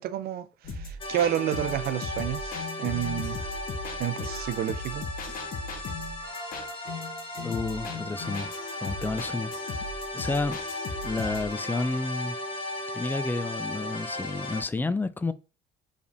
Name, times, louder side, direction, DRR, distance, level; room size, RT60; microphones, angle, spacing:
voice 1, 0.0-3.4 4.0-5.1, right 11 dB, 65° right, 0.5 m, -30 dB
sound 1, 0.6-11.5, left 3 dB, 55° left, 0.9 m, -38 dB
sound 2, 1.0-14.6, left 1 dB, 30° left, 1.2 m, -36 dB
voice 2, 7.4-8.5 8.8-9.5 10.1-10.6 11.0-12.4 12.9-15.3, left 3 dB, 10° left, 0.3 m, -30 dB
4.9 x 3.4 x 2.6 m
cardioid pair, 110°, 17 cm